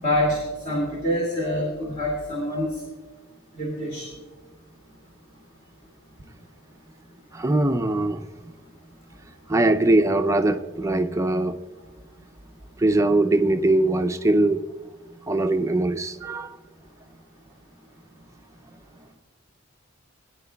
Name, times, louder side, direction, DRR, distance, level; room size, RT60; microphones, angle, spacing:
voice 1, 0.0-0.4 0.6-2.7 3.6-4.1, left 1 dB, 35° left, -3 dB, 2.4 m, -25 dB
voice 2, 7.3-8.3 9.5-11.6 12.8-14.6 15.3-16.6, right 2 dB, 15° right, 7 dB, 0.5 m, -21 dB
21.0 x 10.0 x 2.3 m, 1.4 s
head